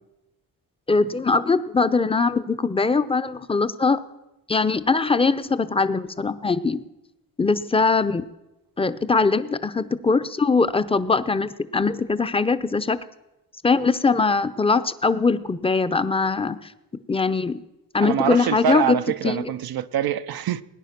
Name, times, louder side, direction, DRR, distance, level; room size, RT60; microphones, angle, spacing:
voice 1, 0.9-4.0 4.5-6.8 7.4-8.2 8.8-13.0 13.6-16.7 17.1-17.6 17.9-19.0 19.2-19.5, left 4 dB, 15° left, 0.7 m, -21 dB
voice 2, 18.0-20.6, right 9 dB, 75° right, 0.6 m, -24 dB
19.5 x 9.9 x 5.9 m
cardioid pair, 90°, 36 cm